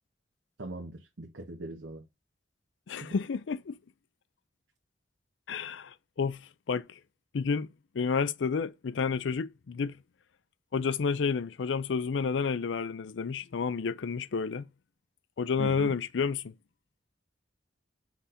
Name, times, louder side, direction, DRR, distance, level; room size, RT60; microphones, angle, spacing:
voice 1, 0.6-2.0 3.0-3.1 15.6-15.9, right 2 dB, 75° right, 1.0 m, -40 dB
voice 2, 2.9-3.8 5.5-6.9 7.3-7.7 7.9-10.0 10.7-14.6 15.4-16.5, left 5 dB, 75° left, 0.4 m, -30 dB
6.0 x 4.2 x 3.7 m
head